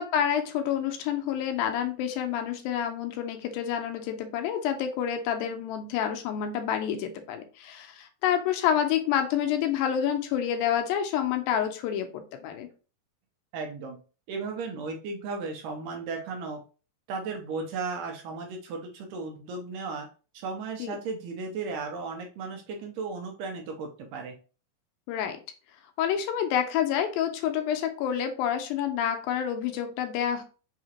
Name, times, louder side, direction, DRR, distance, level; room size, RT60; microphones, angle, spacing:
voice 1, 0.0-12.7 20.8-21.0 25.1-25.4 26.0-30.4, left 9 dB, 80° left, 6 dB, 2.4 m, -28 dB
voice 2, 13.5-14.0 14.3-16.6 17.1-20.1 20.3-24.3, right 4 dB, 80° right, 3 dB, 2.1 m, -35 dB
5.8 x 2.8 x 2.8 m, 0.36 s
omnidirectional pair, 4.2 m